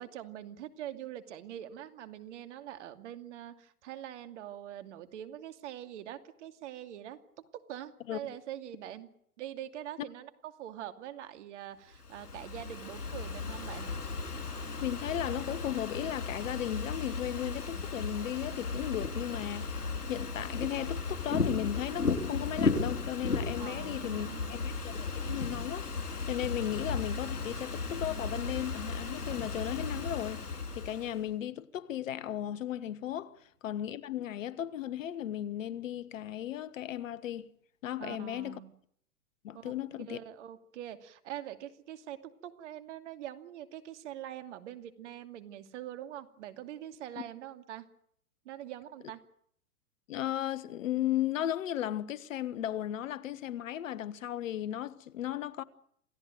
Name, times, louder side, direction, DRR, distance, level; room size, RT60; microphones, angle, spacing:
voice 1, 0.0-9.1 9.4-13.9 23.6-24.7 38.0-38.7 39.5-39.7 40.0-47.9 48.4-49.2, right 11 dB, 50° right, 2.6 m, -44 dB
Ocean / Fireworks, 11.9-31.2, left 4 dB, 85° left, 5.3 m, -35 dB
voice 2, 14.8-33.3 33.6-37.5 37.8-38.6 39.4-40.2 47.2-47.3 50.1-55.6, left 12 dB, 55° left, 1.4 m, -36 dB
28.5 x 17.0 x 9.2 m
hypercardioid pair, 120°, 45 cm